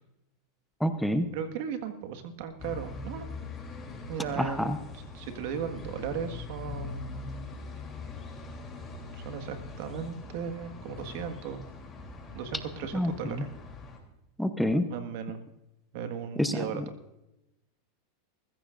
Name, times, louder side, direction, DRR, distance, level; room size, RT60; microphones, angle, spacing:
voice 1, 0.8-1.3 4.4-4.8 12.9-13.4 14.4-14.9 16.4-16.8, equal, ahead, 8 dB, 0.8 m, -28 dB
voice 2, 1.3-3.3 4.1-7.1 9.1-11.6 12.3-13.5 14.9-15.4 15.9-16.8, right 7 dB, 65° right, 7 dB, 1.7 m, -36 dB
sound 1, 2.6-14.0, left 3 dB, 20° left, 3.4 m, -42 dB
20.5 x 15.0 x 2.6 m, 0.92 s
supercardioid pair, 120°, 0 cm